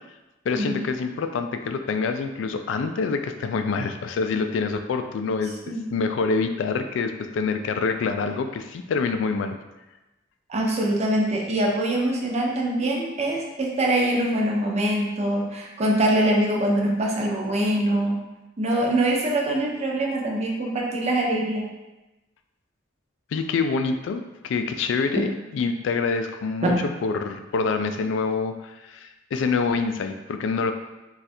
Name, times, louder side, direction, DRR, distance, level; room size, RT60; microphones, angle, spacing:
voice 1, 0.5-5.6 5.9-9.5 23.3-30.7, left 4 dB, 70° left, 7 dB, 0.3 m, -26 dB
voice 2, 10.5-18.2 18.6-21.7 26.6-26.7, right 1 dB, 35° right, -1 dB, 0.5 m, -23 dB
2.6 x 2.4 x 4.1 m, 1.0 s
head